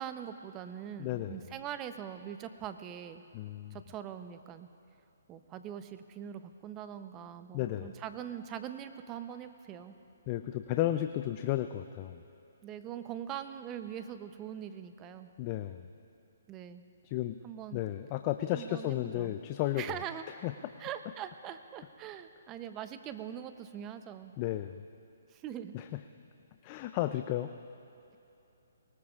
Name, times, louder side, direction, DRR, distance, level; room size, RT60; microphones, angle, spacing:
voice 1, 0.0-3.2 3.7-4.7 5.3-10.0 12.6-15.3 16.5-16.9 17.4-17.8 18.5-19.4 19.8-20.2 20.8-24.3 25.3-25.8, right 9 dB, 20° right, 10 dB, 0.7 m, -42 dB
voice 2, 1.0-1.4 3.3-3.8 7.5-7.9 10.3-12.2 15.4-15.9 17.0-17.4 17.7-20.0 20.4-20.5 24.4-24.8 25.7-25.9 26.6-27.5, left 14 dB, 30° left, 9 dB, 0.4 m, -33 dB
23.0 x 19.5 x 2.4 m, 2.9 s
hypercardioid pair, 145°, 0 cm